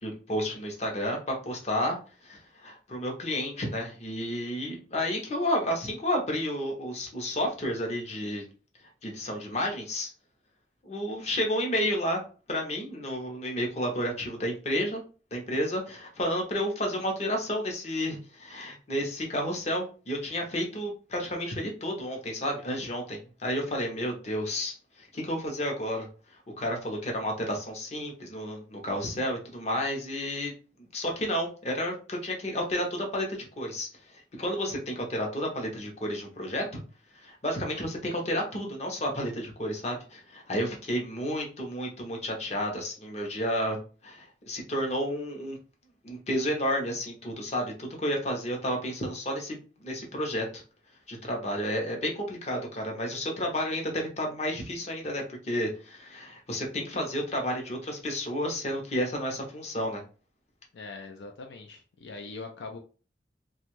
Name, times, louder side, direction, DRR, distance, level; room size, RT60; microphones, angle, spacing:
voice 1, 0.0-8.4 9.0-10.1 10.8-12.2 12.5-15.0 15.3-30.5 30.8-36.8 37.1-45.6 46.0-50.6 51.1-60.0, equal, 35° left, 1 dB, 0.7 m, -31 dB
voice 2, 60.7-62.8, left 3 dB, 75° left, 4 dB, 0.4 m, -42 dB
2.5 x 2.3 x 3.0 m, 0.36 s
head